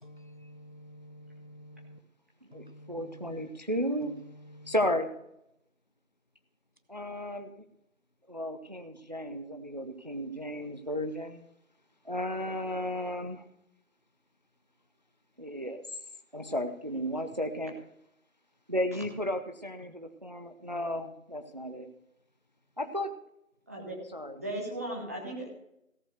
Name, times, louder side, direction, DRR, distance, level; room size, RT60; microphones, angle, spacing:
voice 1, 0.0-2.0 2.5-3.5 4.0-5.0, equal, 40° left, 10 dB, 0.7 m, -50 dB
voice 2, 2.5-4.1 4.7-5.1 6.9-7.6 8.3-11.4 12.1-13.4 15.4-15.8 16.3-17.7 18.7-21.9 22.8-23.1 24.1-24.3, equal, 30° right, 7 dB, 0.7 m, -34 dB
voice 3, 24.4-25.5, right 1 dB, 10° right, -2 dB, 1.3 m, -37 dB
16.5 x 6.2 x 6.4 m, 0.79 s
figure-of-eight pair, 165°, 41 cm